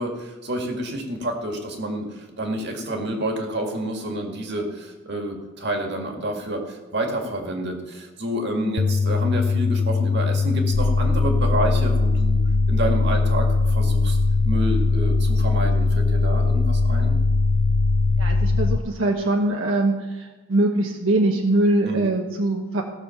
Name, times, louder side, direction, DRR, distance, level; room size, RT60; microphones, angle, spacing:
voice 1, 0.0-12.4 12.7-14.2 14.4-17.2 21.8-22.1, right 1 dB, 60° right, 3 dB, 2.0 m, -28 dB
sound 1, 8.8-18.8, left 5 dB, 40° left, 0.4 m, -22 dB
sound 2, 10.7-18.8, left 1 dB, 75° left, 0.8 m, -24 dB
voice 2, 18.2-22.8, right 2 dB, 85° right, 1 dB, 1.1 m, -22 dB
16.5 x 6.6 x 5.8 m, 1.2 s
head